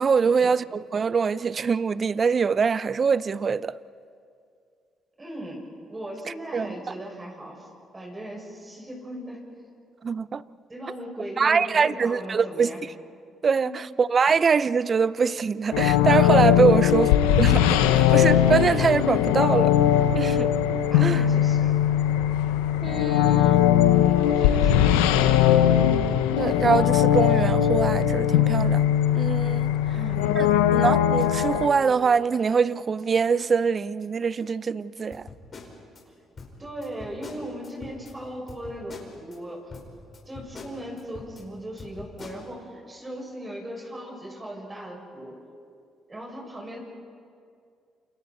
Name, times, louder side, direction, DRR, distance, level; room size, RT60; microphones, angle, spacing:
voice 1, 0.0-3.8 6.5-6.8 10.0-10.4 11.4-12.7 13.4-17.1 17.4-19.7 20.1-20.5 21.0-21.2 22.8-23.7 26.4-28.8 29.1-29.7 30.4-35.2, right 5 dB, 45° right, 0.6 m, -23 dB
voice 2, 5.2-7.7 7.9-9.4 10.7-12.8 13.6-13.8 14.3-14.4 16.7-16.9 20.9-21.7 23.9-25.2 29.9-30.4 36.6-39.7 40.2-45.4 46.1-46.8, right 1 dB, 25° right, 6.8 m, -38 dB
sound 1, 15.7-31.7, left 10 dB, 90° left, 0.9 m, -20 dB
sound 2, 35.1-36.0 36.4-38.1 38.5-39.4 39.7-41.4 41.8-42.4, left 3 dB, 45° left, 5.1 m, -43 dB
29.0 x 28.0 x 4.4 m
supercardioid pair, 60°, 0 cm